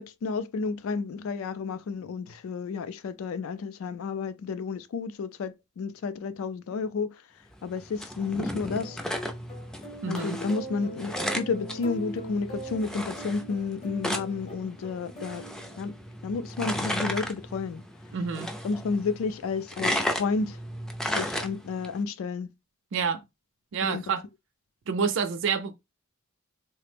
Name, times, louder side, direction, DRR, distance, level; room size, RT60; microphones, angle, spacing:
voice 1, 0.0-7.2 7.6-9.0 10.1-15.4 15.8-16.0 16.2-17.8 18.6-20.6 21.1-22.5 23.8-24.0, left 4 dB, 80° left, 0.3 m, -31 dB
sound 1, 7.5-22.0, equal, 5° left, 0.3 m, -35 dB
sound 2, 8.7-16.2, right 2 dB, 30° left, 0.8 m, -42 dB
voice 2, 10.0-10.4 18.1-18.5 22.9-23.2 23.7-24.2 24.9-25.7, right 5 dB, 65° right, 0.4 m, -28 dB
3.2 x 2.0 x 3.3 m
head